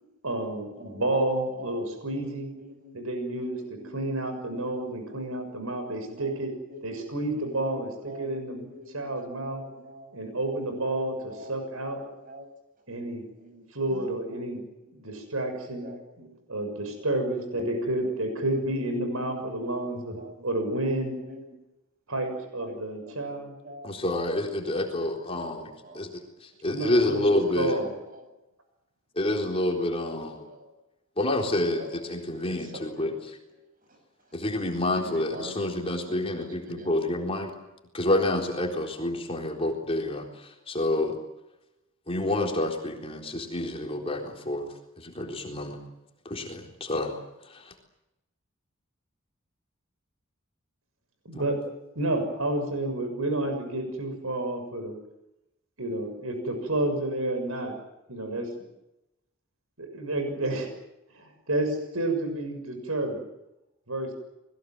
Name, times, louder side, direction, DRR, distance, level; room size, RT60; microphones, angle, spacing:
voice 1, 0.2-2.5 2.9-6.5 6.8-8.6 8.9-9.6 10.1-12.0 12.9-13.2 13.7-14.6 15.0-15.9 16.5-21.1 22.1-23.5 26.6-27.9 51.2-51.6 51.9-54.9 55.8-57.7 58.1-58.5 59.8-60.7 61.1-63.2 63.9-64.1, right 1 dB, 90° right, 6 dB, 6.8 m, -30 dB
voice 2, 0.8-1.1 1.5-3.0 3.4-4.1 4.4-7.0 7.3-9.1 9.4-10.1 10.7-11.6 12.0-12.5 13.4-15.1 15.5-16.4 17.0-20.5 21.2-21.6 22.6-23.9 24.4-26.1 27.3-28.3 29.7-30.7 31.7-32.3 32.6-33.2 33.5-33.6 33.9-34.0 34.9-37.2, equal, 40° right, 7 dB, 7.8 m, -46 dB
voice 3, 23.8-27.8 29.2-30.4 31.2-33.4 34.3-37.5 37.9-41.2 42.1-45.8 46.2-47.2 47.5-47.7 51.3-51.4, left 1 dB, 25° left, 1 dB, 4.0 m, -28 dB
29.5 x 22.0 x 7.9 m, 0.92 s
head